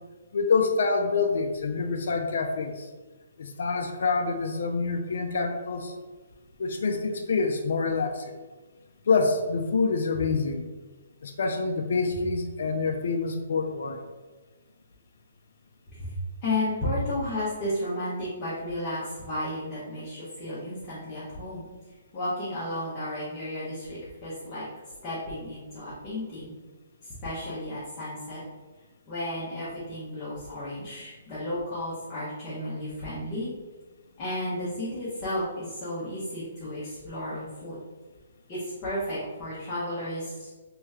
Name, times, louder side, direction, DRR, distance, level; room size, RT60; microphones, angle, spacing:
voice 1, 0.3-2.9 3.4-5.9 6.6-8.3 9.1-10.7 11.2-14.0, left 4 dB, 60° left, 4 dB, 0.4 m, -26 dB
voice 2, 16.4-21.6 22.1-24.7 25.0-26.5 27.2-28.4 29.1-33.5 34.2-37.8 38.5-40.5, left 1 dB, 20° left, -11 dB, 0.9 m, -33 dB
3.2 x 3.0 x 3.6 m, 1.3 s
hypercardioid pair, 170°, 0 cm